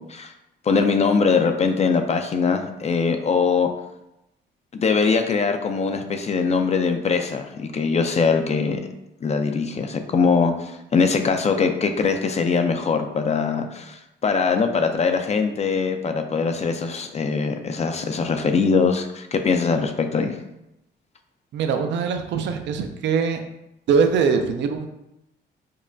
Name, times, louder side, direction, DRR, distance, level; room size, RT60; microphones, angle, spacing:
voice 1, 0.7-3.7 4.7-8.8 9.2-20.4, left 5 dB, 35° left, 6 dB, 0.4 m, -22 dB
voice 2, 21.5-23.4 23.9-24.9, right 6 dB, 65° right, 6 dB, 0.4 m, -22 dB
5.3 x 2.2 x 2.5 m, 0.89 s
cardioid pair, 90°, 20 cm